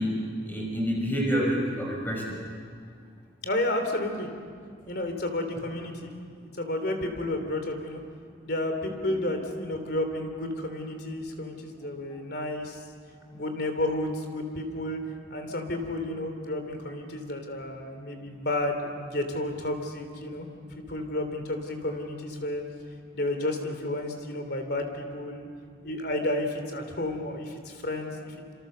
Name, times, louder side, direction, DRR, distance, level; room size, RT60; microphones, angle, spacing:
voice 1, 0.0-2.4 13.4-13.5, equal, 10° left, -2 dB, 5.4 m, -28 dB
voice 2, 3.4-4.3 4.9-6.1 6.5-8.0 8.4-12.8 13.3-15.0 15.3-22.6 23.1-25.5 25.8-28.5, left 1 dB, 55° left, 5 dB, 3.3 m, -31 dB
27.5 x 27.0 x 6.9 m, 2.1 s
head